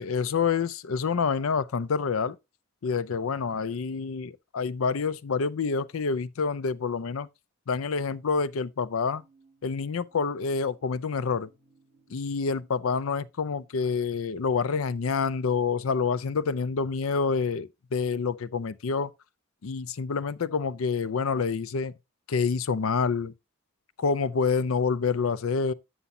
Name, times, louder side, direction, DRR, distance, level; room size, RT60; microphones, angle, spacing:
voice 1, 0.0-2.4 2.8-7.3 7.7-9.2 9.6-11.5 12.1-19.1 19.6-21.9 22.3-23.3 24.0-25.7, left 5 dB, 80° left, 0.5 m, -27 dB
sound 1, 9.0-17.2, right 4 dB, 5° right, 4.8 m, -65 dB
11.0 x 7.0 x 2.7 m
head